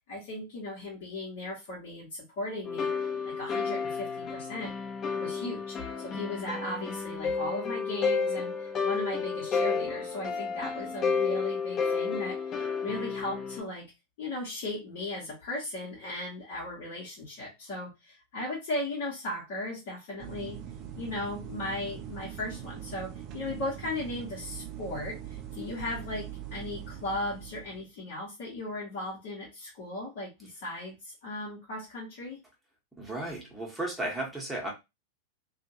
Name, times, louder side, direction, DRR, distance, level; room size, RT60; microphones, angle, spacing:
voice 1, 0.1-4.7 5.1-13.9 14.2-20.6 21.0-32.4, left 2 dB, 50° left, -5 dB, 1.2 m, -37 dB
sound 1, 2.6-13.6, left 5 dB, 30° left, 1.0 m, -31 dB
sound 2, 20.2-27.9, right 10 dB, 35° right, 0.5 m, -42 dB
voice 2, 33.0-34.7, right 1 dB, 5° right, -2 dB, 1.2 m, -34 dB
2.8 x 2.5 x 2.9 m, 0.22 s
figure-of-eight pair, 90°, 0 cm